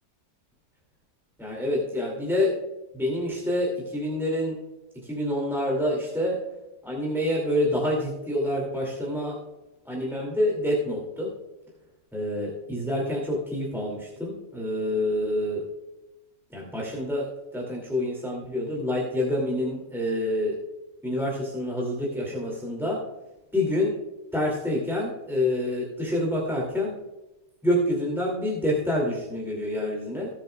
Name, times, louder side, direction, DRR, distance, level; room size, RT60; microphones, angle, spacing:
voice 1, 1.4-2.5 2.9-4.6 5.0-6.4 6.8-9.4 9.9-11.3 12.1-15.6 16.5-17.3 17.5-20.6 21.0-23.0 23.5-23.9 24.3-26.9 27.6-30.3, left 1 dB, ahead, -3 dB, 2.2 m, -27 dB
19.0 x 7.7 x 2.3 m, 1.0 s
omnidirectional pair, 1.9 m